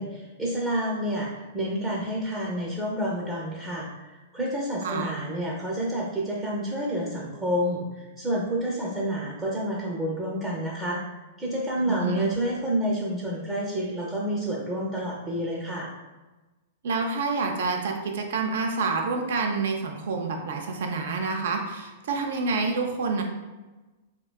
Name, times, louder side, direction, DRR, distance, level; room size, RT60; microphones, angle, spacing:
voice 1, 0.0-11.0 11.4-15.9, equal, 20° right, -4 dB, 0.5 m, -29 dB
voice 2, 4.8-5.1 11.8-12.3 16.8-23.2, right 4 dB, 70° right, 3 dB, 0.4 m, -28 dB
2.7 x 2.2 x 2.2 m, 1.2 s
hypercardioid pair, 120°, 0 cm